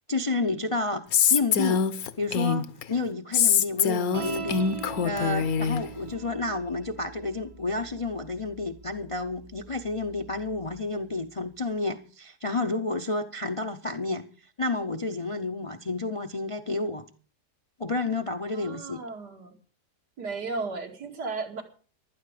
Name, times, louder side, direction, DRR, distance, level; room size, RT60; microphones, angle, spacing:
voice 1, 0.1-1.9 2.2-4.7 5.0-17.0 17.8-19.0, left 3 dB, 40° left, 0.4 m, -30 dB
Female speech woman speaking, 1.1-2.8 3.3-5.8, left 7 dB, 65° left, 1.2 m, -24 dB
sound 1, 4.1-10.8, right 4 dB, 45° right, 0.4 m, -41 dB
voice 2, 18.5-19.5 20.2-21.6, right 4 dB, 85° right, 2.8 m, -35 dB
16.0 x 12.0 x 4.9 m
omnidirectional pair, 1.7 m